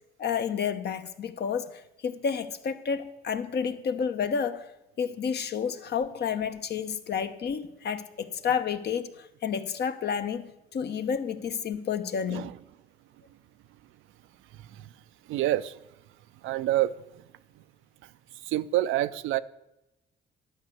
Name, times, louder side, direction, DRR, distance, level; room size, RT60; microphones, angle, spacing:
voice 1, 0.2-4.6 5.0-12.5, left 7 dB, 55° left, 0.9 m, -30 dB
voice 2, 14.5-14.9 15.3-15.8 16.4-17.2 18.4-19.4, right 14 dB, 85° right, 0.5 m, -28 dB
11.0 x 5.3 x 8.0 m
cardioid pair, 90°, 20 cm